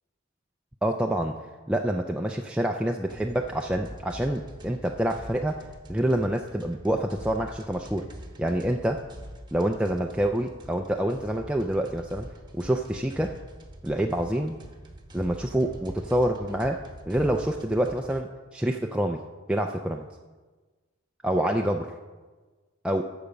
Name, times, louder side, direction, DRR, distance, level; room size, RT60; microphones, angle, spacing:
voice 1, 0.8-1.4 1.7-5.6 5.9-8.1 8.4-9.0 9.5-12.3 12.5-13.3 13.8-14.6 15.1-19.2 19.5-20.0 21.2-21.9 22.8-23.0, right 1 dB, 5° right, 1 dB, 0.3 m, -27 dB
sound 1, 3.1-18.2, equal, 20° right, 1.0 m, -45 dB
12.0 x 7.0 x 5.1 m, 1.3 s
head